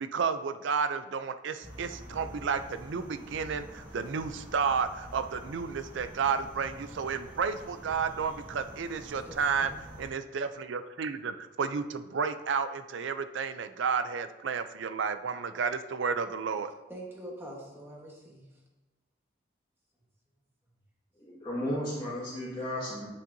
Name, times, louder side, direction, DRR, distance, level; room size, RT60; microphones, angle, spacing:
voice 1, 0.0-9.7 10.0-16.7, right 5 dB, 75° right, 0.4 m, -32 dB
sound 1, 1.6-10.1, equal, 45° right, 2.3 m, -47 dB
voice 2, 9.2-9.8 16.9-18.5, right 1 dB, 10° right, 1.2 m, -45 dB
voice 3, 21.2-23.1, left 1 dB, 20° left, 1.7 m, -34 dB
8.5 x 6.4 x 2.7 m
head